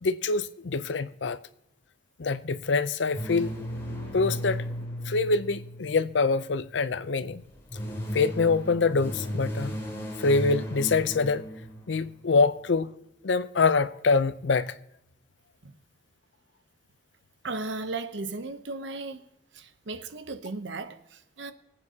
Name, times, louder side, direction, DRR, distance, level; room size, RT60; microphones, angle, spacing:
voice 1, 0.0-1.4 2.2-3.5 4.1-4.6 5.1-7.4 8.1-9.8 10.2-11.4 11.9-12.9 13.2-14.8, left 4 dB, 80° left, 0.6 m, -25 dB
sound 1, 3.1-6.5 7.4-12.2, equal, 15° left, 2.4 m, -35 dB
voice 2, 17.4-19.3 19.5-21.5, right 3 dB, 80° right, 0.8 m, -36 dB
23.5 x 8.6 x 2.8 m
head